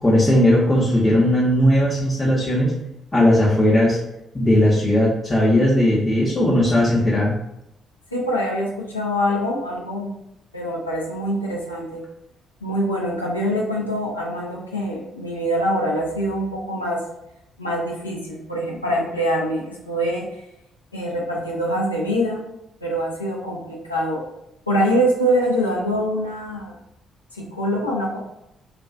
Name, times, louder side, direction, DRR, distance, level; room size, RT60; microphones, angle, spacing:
voice 1, 0.0-2.7 3.1-4.0 4.3-7.3, left 1 dB, 20° left, -6 dB, 0.7 m, -17 dB
voice 2, 8.1-10.1 10.5-12.0 12.6-17.0 17.6-20.3 20.9-22.4 22.8-24.2 24.7-26.7 27.3-28.2, equal, 90° left, -4 dB, 0.4 m, -24 dB
2.4 x 2.2 x 2.3 m, 0.84 s
figure-of-eight pair, 45°, 0 cm